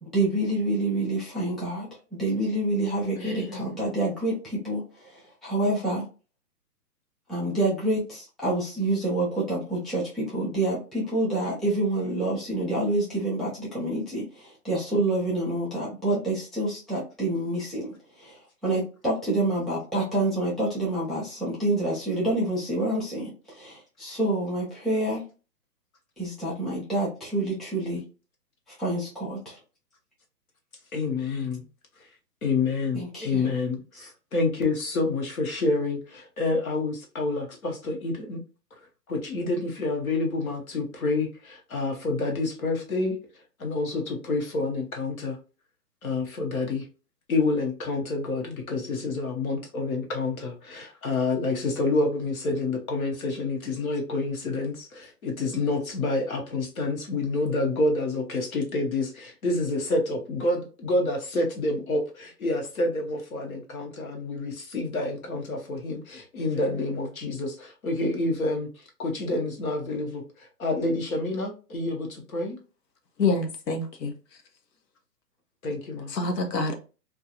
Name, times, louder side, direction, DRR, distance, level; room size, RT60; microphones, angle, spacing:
voice 1, 0.0-6.0 7.3-25.2 26.2-28.0 28.7-29.6 32.9-33.5 34.0-34.1, right 2 dB, ahead, 0.4 m, -28 dB
voice 2, 3.2-3.8 30.9-31.7 32.4-38.4 38.7-38.8 39.1-43.2 43.6-45.4 46.0-46.9 47.3-72.6 75.6-76.2, left 3 dB, 60° left, 0.9 m, -28 dB
voice 3, 73.2-74.1 76.2-76.8, left 3 dB, 85° left, 0.9 m, -26 dB
2.4 x 2.3 x 2.7 m
hypercardioid pair, 180°, 49 cm